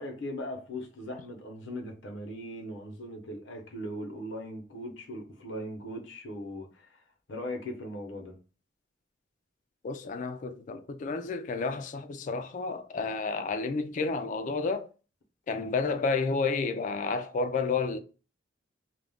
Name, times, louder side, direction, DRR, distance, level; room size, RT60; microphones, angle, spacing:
voice 1, 0.0-7.0 7.3-8.4 15.5-15.7, left 1 dB, 80° left, 0.8 m, -39 dB
voice 2, 9.8-14.9 15.5-18.0, left 4 dB, 40° left, 0.3 m, -31 dB
2.4 x 2.1 x 3.4 m
head